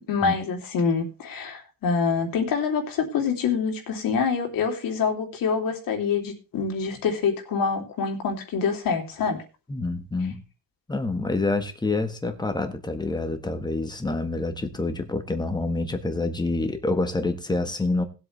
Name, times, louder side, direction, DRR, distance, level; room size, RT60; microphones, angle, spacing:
voice 1, 0.1-9.4, left 5 dB, 65° left, 3 dB, 3.2 m, -26 dB
voice 2, 9.7-10.4 10.9-18.0, left 2 dB, 10° left, 7 dB, 1.6 m, -27 dB
19.5 x 8.2 x 3.4 m, 0.32 s
cardioid pair, 150°, 36 cm